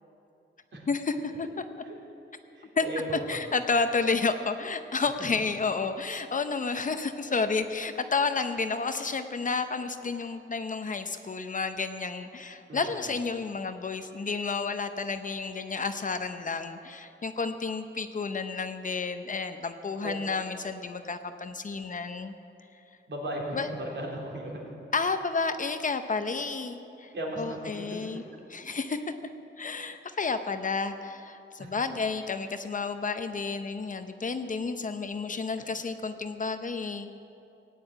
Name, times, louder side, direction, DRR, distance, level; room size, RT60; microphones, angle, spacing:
voice 1, 0.9-1.6 2.8-2.9 3.3-22.3 23.5-23.7 24.9-27.1 27.4-28.2 28.5-29.1 29.6-37.1, left 4 dB, 40° left, 8 dB, 0.7 m, -31 dB
voice 2, 2.5-3.4 12.7-13.2 20.0-20.2 23.1-24.7 27.1-28.2 31.6-31.8, right 1 dB, 60° right, -2 dB, 3.4 m, -36 dB
17.0 x 9.3 x 8.9 m, 2.7 s
wide cardioid pair, 165°, 21 cm